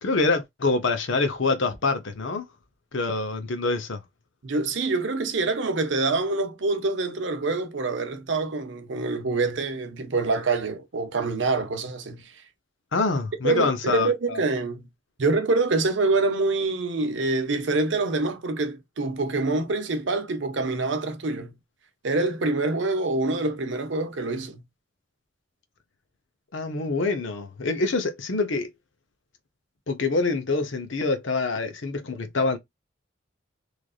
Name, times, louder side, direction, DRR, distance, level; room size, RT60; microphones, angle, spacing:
voice 1, 0.0-2.5 2.9-4.0 12.9-14.4 26.5-28.7 29.9-32.6, left 3 dB, 75° left, 0.7 m, -25 dB
voice 2, 4.4-12.3 13.4-14.9 15.2-21.5 22.0-24.6, right 3 dB, 70° right, 0.7 m, -26 dB
3.2 x 2.5 x 2.4 m
head